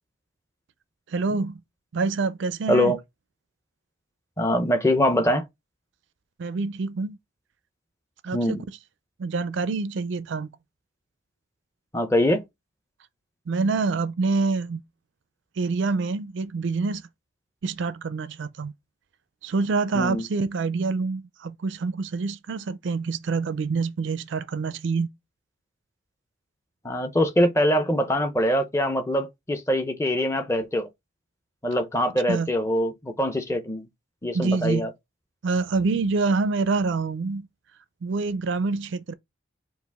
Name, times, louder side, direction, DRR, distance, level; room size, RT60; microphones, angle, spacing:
voice 1, 1.1-1.6 1.9-3.0 6.4-7.2 8.2-8.6 9.2-10.5 13.5-14.8 15.6-17.0 17.6-18.7 19.4-25.1 32.3-32.5 34.3-34.9 35.4-37.5 38.0-39.1, right 4 dB, 60° right, 0.4 m, -26 dB
voice 2, 4.4-5.4 8.3-8.6 11.9-12.4 19.9-20.3 26.8-30.9 31.6-33.9 34.2-34.9, equal, 15° left, 0.6 m, -23 dB
4.8 x 2.4 x 3.5 m
head